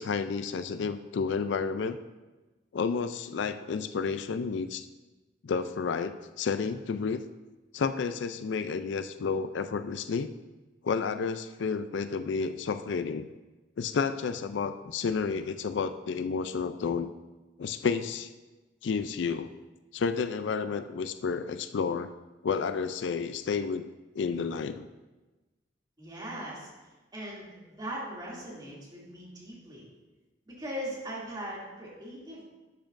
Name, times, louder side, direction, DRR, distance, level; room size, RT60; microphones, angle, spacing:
voice 1, 0.0-2.0 2.7-4.9 5.4-7.2 7.7-10.3 10.8-13.3 13.8-17.1 17.6-18.3 18.8-19.5 19.9-22.1 22.4-24.9, left 5 dB, 80° left, 11 dB, 0.4 m, -31 dB
voice 2, 26.0-26.7 27.1-29.9 30.5-32.5, equal, 25° right, -6 dB, 2.5 m, -39 dB
12.0 x 7.3 x 2.6 m, 1.2 s
head